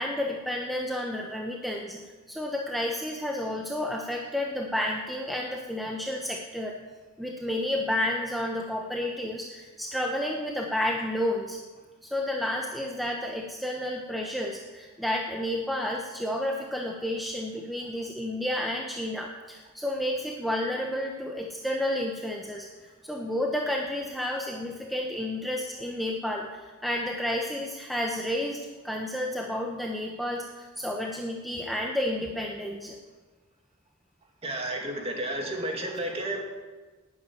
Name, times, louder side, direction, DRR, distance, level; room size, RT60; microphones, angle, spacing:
voice 1, 0.0-2.0 2.3-6.8 7.2-11.6 12.0-33.0, left 1 dB, ahead, 0 dB, 0.9 m, -31 dB
voice 2, 34.4-36.4, right 1 dB, 25° right, 1 dB, 2.2 m, -32 dB
12.0 x 9.3 x 9.1 m, 1.3 s
head